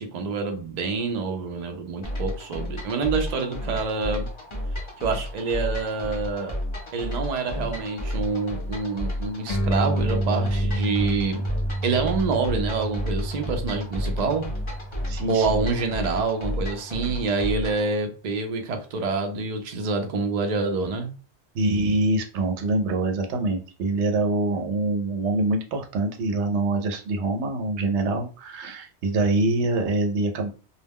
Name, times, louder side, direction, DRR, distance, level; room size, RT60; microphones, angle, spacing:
voice 1, 0.0-4.3 5.0-6.6 6.9-11.4 11.8-14.5 15.3-21.1, right 4 dB, 50° right, 0.5 m, -27 dB
sound 1, 2.0-17.9, left 1 dB, 30° left, 0.6 m, -32 dB
sound 2, 9.5-16.3, right 1 dB, 70° left, 0.8 m, -30 dB
voice 2, 15.1-15.6 21.5-30.5, right 2 dB, 80° right, 0.9 m, -25 dB
2.3 x 2.1 x 3.4 m
omnidirectional pair, 1.2 m